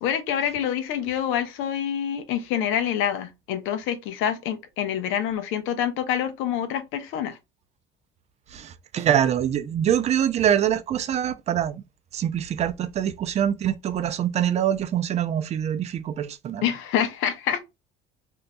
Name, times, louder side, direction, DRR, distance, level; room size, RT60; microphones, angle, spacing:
voice 1, 0.0-7.4 16.6-17.6, left 9 dB, 90° left, 0.8 m, -26 dB
voice 2, 8.5-11.8 12.1-16.6, right 10 dB, 35° right, 0.4 m, -24 dB
4.0 x 2.7 x 2.2 m
cardioid pair, 145°, 20 cm